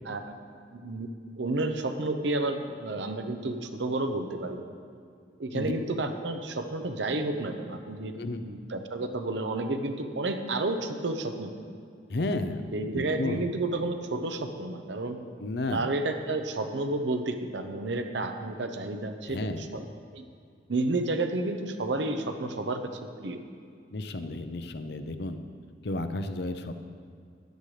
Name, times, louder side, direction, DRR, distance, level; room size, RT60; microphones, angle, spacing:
voice 1, 0.7-1.1 1.4-4.7 5.4-11.5 12.7-15.2 15.7-19.8 20.1-20.3 20.7-22.8 23.2-23.4, right 2 dB, 75° right, 7 dB, 0.8 m, -31 dB
voice 2, 8.1-8.5 12.1-13.5 15.4-15.9 19.3-19.6 23.9-25.4 25.8-26.8, left 2 dB, 60° left, 9 dB, 0.6 m, -32 dB
13.0 x 10.5 x 3.3 m, 2.3 s
head